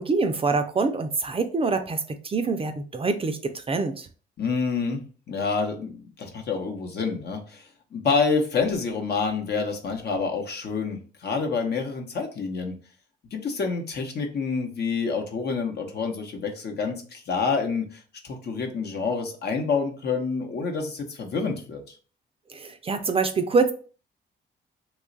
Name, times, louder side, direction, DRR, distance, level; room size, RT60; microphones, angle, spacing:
voice 1, 0.0-4.1 22.5-23.7, right 4 dB, 30° right, 7 dB, 0.4 m, -25 dB
voice 2, 4.4-5.0 5.3-12.7 13.3-21.9, left 5 dB, 55° left, 4 dB, 0.9 m, -28 dB
3.1 x 2.3 x 3.8 m, 0.39 s
cardioid pair, 90°, 20 cm